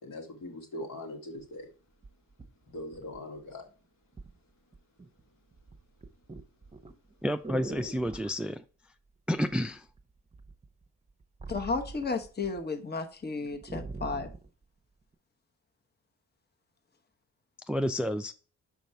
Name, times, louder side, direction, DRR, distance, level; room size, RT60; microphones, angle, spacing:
voice 1, 0.0-1.7 2.7-3.7, left 1 dB, 65° left, 1 dB, 2.0 m, -41 dB
sound 1, 1.4-1.5 2.0-3.5 4.2-4.4 4.7-5.2 5.5-8.4 9.5-10.0 10.3-12.6 12.9-13.0 13.3-14.5 15.1-15.2, right 3 dB, 20° right, 0.9 m, -43 dB
voice 2, 7.2-8.6 9.3-9.8 17.7-18.3, equal, 5° right, 11 dB, 0.4 m, -30 dB
voice 3, 11.5-14.3, left 4 dB, 30° left, 5 dB, 1.1 m, -33 dB
5.2 x 4.8 x 4.4 m, 0.37 s
supercardioid pair, 45°, 35 cm